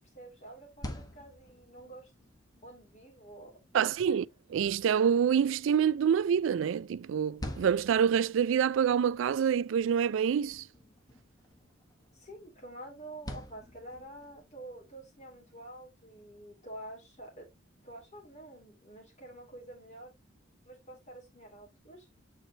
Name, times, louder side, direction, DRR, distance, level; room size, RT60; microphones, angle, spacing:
voice 1, 0.1-2.1 2.6-4.2 12.1-17.5 17.8-20.1 20.6-22.1, right 1 dB, 35° left, 2.9 m, -48 dB
sound 1, 0.5-14.5, left 1 dB, 20° left, 1.2 m, -49 dB
voice 2, 3.7-4.2 4.5-10.6, right 8 dB, 70° right, 0.3 m, -26 dB
9.1 x 4.6 x 2.8 m
head